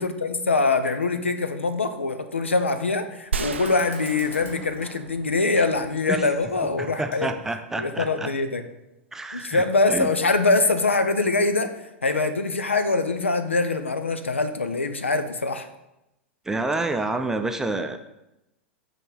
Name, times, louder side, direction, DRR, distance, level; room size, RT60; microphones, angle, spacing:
voice 1, 0.0-7.3 7.8-8.6 9.3-15.7, left 3 dB, 80° left, 9 dB, 0.6 m, -23 dB
Fire, 3.3-8.3, left 1 dB, 30° left, 2.0 m, -49 dB
sound 1, 3.3-6.2, right 6 dB, 70° right, 0.4 m, -34 dB
voice 2, 6.6-8.3 9.1-10.1 16.4-18.0, right 2 dB, 5° right, 6 dB, 0.5 m, -28 dB
7.5 x 3.8 x 4.7 m, 0.91 s
figure-of-eight pair, 90°, 6 cm